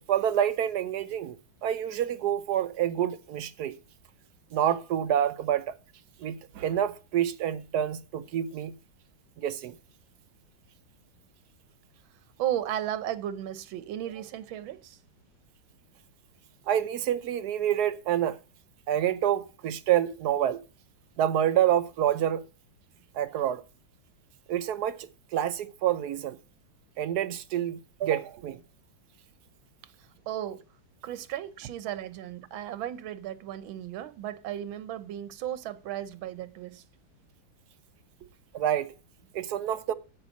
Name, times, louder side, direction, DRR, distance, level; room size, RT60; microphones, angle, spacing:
voice 1, 0.1-1.3 1.6-3.7 4.5-5.7 6.2-8.7 9.4-9.7 16.7-18.4 18.9-20.6 21.2-22.4 23.1-23.6 24.5-26.4 27.0-28.6 38.5-38.9 39.3-39.9, right 10 dB, 65° right, 1.0 m, -27 dB
voice 2, 12.4-15.0 30.3-30.6 31.0-36.8 38.2-38.3, right 11 dB, 85° right, 1.6 m, -35 dB
8.2 x 7.8 x 7.1 m
omnidirectional pair, 2.1 m